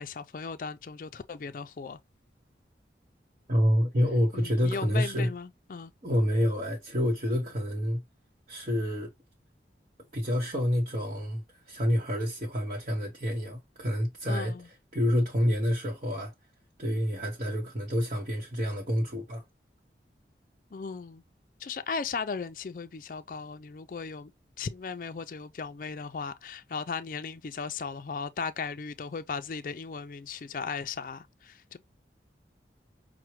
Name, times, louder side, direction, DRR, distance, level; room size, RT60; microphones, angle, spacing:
voice 1, 0.0-2.0 4.3-5.9 14.3-14.7 20.7-21.2 21.6-24.3 24.6-31.8, left 5 dB, 50° left, 0.4 m, -37 dB
voice 2, 3.5-5.3 6.0-8.0 8.5-9.1 10.1-14.5 14.9-16.3 16.8-19.4, equal, 40° right, 0.9 m, -28 dB
5.8 x 2.1 x 3.0 m
head